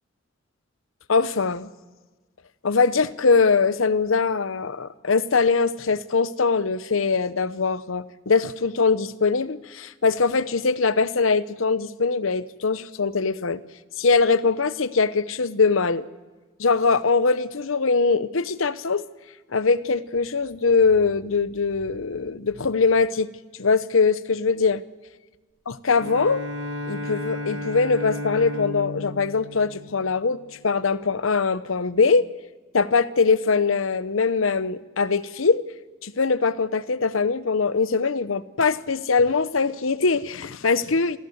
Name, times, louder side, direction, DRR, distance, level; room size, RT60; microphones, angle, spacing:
voice 1, 1.1-1.7 2.6-13.6 14.0-16.1 16.6-19.0 19.5-23.3 23.6-24.8 25.7-26.4 26.9-30.4 30.6-32.3 32.7-35.6 36.0-41.2, left 4 dB, 80° left, 15 dB, 0.8 m, -22 dB
Bowed string instrument, 26.0-30.6, left 1 dB, 75° right, 2.4 m, -34 dB
26.0 x 15.0 x 7.9 m, 1.3 s
head